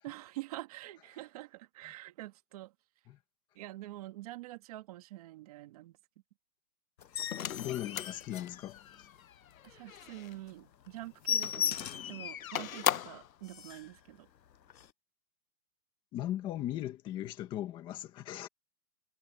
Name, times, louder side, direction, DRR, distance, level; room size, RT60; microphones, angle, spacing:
voice 1, 0.0-2.7 3.5-6.0 9.6-14.3, right 17 dB, 25° right, 2.3 m, -46 dB
sound 1, 7.0-9.1 9.6-9.7 10.1-10.2 10.5-10.6 10.9-12.2 12.7-12.8 13.1-13.2 13.4-14.0 14.7-14.9, left 9 dB, 85° left, 1.1 m, -37 dB
sound 2, 7.3-10.4 11.3-13.3, left 10 dB, 55° left, 0.6 m, -38 dB
voice 2, 7.5-9.1 16.1-18.5, left 12 dB, 10° left, 1.7 m, -38 dB
hypercardioid pair, 170°, 49 cm